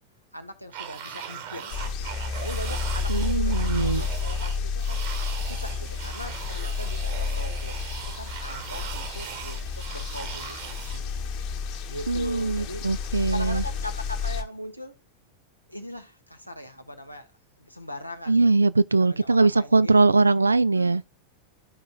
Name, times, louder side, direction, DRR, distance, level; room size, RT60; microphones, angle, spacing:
voice 1, 0.3-2.1 2.4-5.0 5.4-11.3 11.9-12.8 13.3-15.0 15.7-17.3 17.6-18.6 19.0-20.0 20.7-21.1, left 1 dB, 90° left, 1.1 m, -40 dB
sound 1, 0.7-11.0, right 8 dB, 50° right, 1.4 m, -39 dB
sound 2, 1.7-14.4, left 5 dB, 45° left, 1.3 m, -30 dB
voice 2, 3.1-4.0 12.1-13.6 18.3-21.0, right 3 dB, 80° right, 0.3 m, -21 dB
13.0 x 5.1 x 2.3 m
figure-of-eight pair, 90°, 0 cm